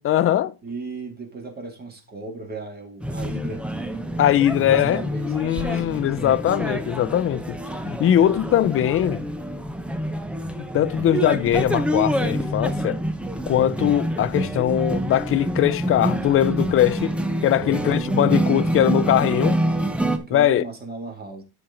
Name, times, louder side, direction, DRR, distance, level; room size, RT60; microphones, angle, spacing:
voice 1, 0.0-0.5 4.2-7.6 7.9-9.2 10.7-13.0 13.5-19.6 20.3-20.6, left 11 dB, 30° left, 0.4 m, -21 dB
voice 2, 0.6-3.6 4.7-6.1 17.6-18.5 20.0-21.4, right 3 dB, 20° right, 2.5 m, -36 dB
sound 1, 3.0-20.2, right 1 dB, 5° right, 0.7 m, -26 dB
12.5 x 4.6 x 3.8 m
cardioid pair, 145°, 42 cm